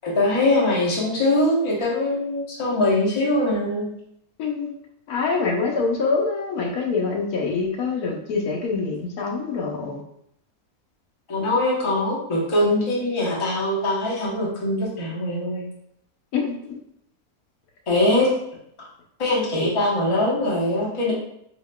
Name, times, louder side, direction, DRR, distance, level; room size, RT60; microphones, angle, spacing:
voice 1, 0.0-3.9 11.3-15.6 17.9-18.3 19.2-21.1, left 1 dB, 25° left, -4 dB, 0.7 m, -22 dB
voice 2, 4.4-4.7 5.1-10.0 16.3-16.7, left 4 dB, 75° left, 1 dB, 1.2 m, -25 dB
4.9 x 2.8 x 2.2 m, 0.72 s
omnidirectional pair, 1.6 m